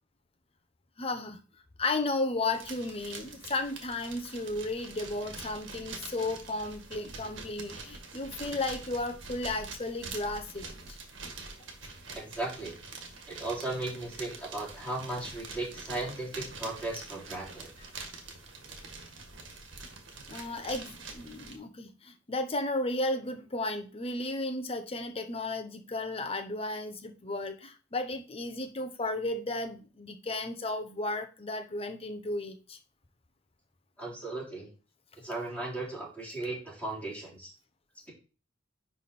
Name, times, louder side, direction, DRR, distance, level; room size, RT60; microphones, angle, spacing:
voice 1, 1.0-1.4 1.8-10.7 20.3-32.8, left 2 dB, 30° left, 0.9 m, -34 dB
sound 1, 2.5-21.6, right 4 dB, 90° right, 1.5 m, -45 dB
voice 2, 12.1-12.8 13.3-17.7 34.0-34.7 35.2-37.5, right 2 dB, 10° left, 3.4 m, -36 dB
9.9 x 3.5 x 4.2 m
head